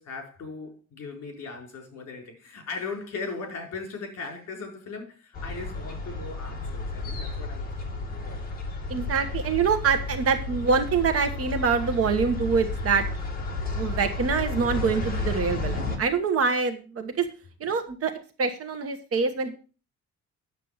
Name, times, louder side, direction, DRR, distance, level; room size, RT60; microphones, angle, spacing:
voice 1, 0.0-7.7 7.9-8.4, left 4 dB, 60° left, 4.4 m, -38 dB
sound 1, 5.3-16.0, left 2 dB, 30° left, 2.3 m, -32 dB
voice 2, 8.9-13.0 13.7-17.2 17.6-18.1 18.4-19.5, right 5 dB, 50° right, 1.2 m, -25 dB
9.4 x 7.4 x 5.6 m
cardioid pair, 175°, 30 cm